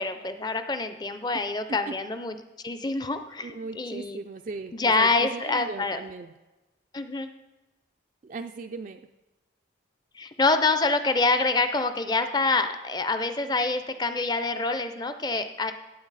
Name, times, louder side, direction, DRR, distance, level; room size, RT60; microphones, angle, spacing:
voice 1, 0.0-2.4 2.6-4.2 4.7-6.0 6.9-7.3 10.1-15.7, left 3 dB, 20° left, 9 dB, 0.5 m, -26 dB
voice 2, 3.4-6.3 8.2-9.0, right 4 dB, 40° right, 6 dB, 0.3 m, -38 dB
17.0 x 7.9 x 4.1 m, 1.1 s
head